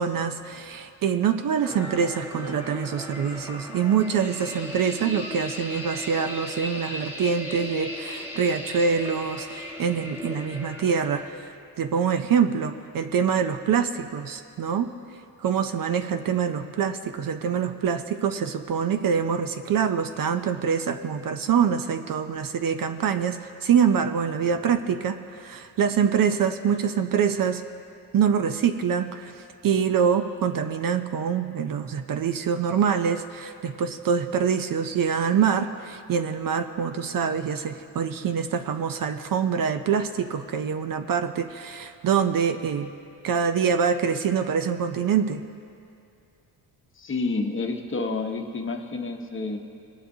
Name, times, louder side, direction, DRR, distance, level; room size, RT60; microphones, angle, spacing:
voice 1, 0.0-14.9 15.4-27.6 28.1-42.9 43.2-45.4, right 7 dB, 50° right, 9 dB, 0.6 m, -25 dB
sound 1, 1.6-11.3, left 1 dB, 5° right, 1.5 m, -37 dB
voice 2, 47.0-49.6, left 3 dB, 30° left, 4 dB, 1.0 m, -29 dB
23.5 x 10.5 x 2.8 m, 2.5 s
cardioid pair, 135°, 42 cm